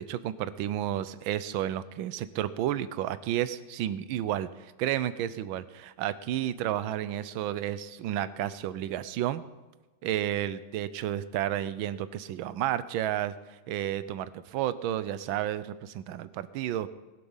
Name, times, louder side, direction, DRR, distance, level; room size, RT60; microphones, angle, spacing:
voice 1, 0.0-9.4 10.0-16.9, right 12 dB, 75° right, 15 dB, 1.4 m, -31 dB
20.0 x 8.0 x 5.6 m, 1.2 s
omnidirectional pair, 2.3 m